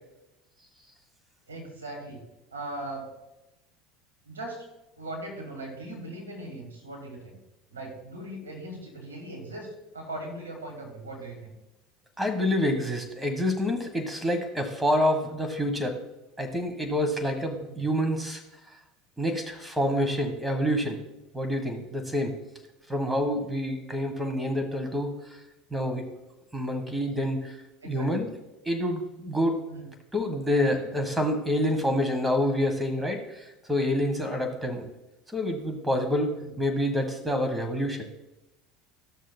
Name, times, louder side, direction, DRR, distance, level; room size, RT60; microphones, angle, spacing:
voice 1, 1.5-2.2 2.5-3.1 4.3-4.7 5.0-7.4 7.7-11.5 17.6-17.8 20.1-20.3 23.2-23.4 26.8-27.0 27.8-28.2 29.7-29.9 34.4-34.5, right 1 dB, 90° right, 1 dB, 1.9 m, -39 dB
voice 2, 12.2-15.9 16.4-18.4 19.2-21.0 21.3-22.3 22.9-25.1 25.7-26.0 26.5-27.5 27.8-28.3 28.6-29.6 30.1-34.9 35.3-38.0, left 1 dB, 10° right, 5 dB, 1.4 m, -27 dB
14.0 x 6.4 x 2.3 m, 0.96 s
hypercardioid pair, 70°, 0 cm